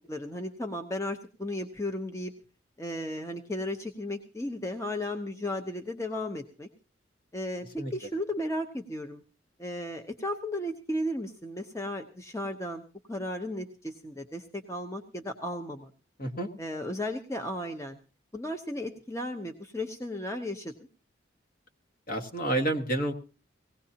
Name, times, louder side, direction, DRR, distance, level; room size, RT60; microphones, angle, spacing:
voice 1, 0.1-2.3 2.8-6.7 7.3-9.2 9.6-12.8 13.1-15.9 16.6-18.0 18.3-20.7, left 1 dB, 15° left, 5 dB, 0.8 m, -35 dB
voice 2, 16.2-16.5 22.1-23.1, right 1 dB, 45° left, 5 dB, 1.6 m, -29 dB
18.5 x 17.0 x 2.8 m, 0.33 s
head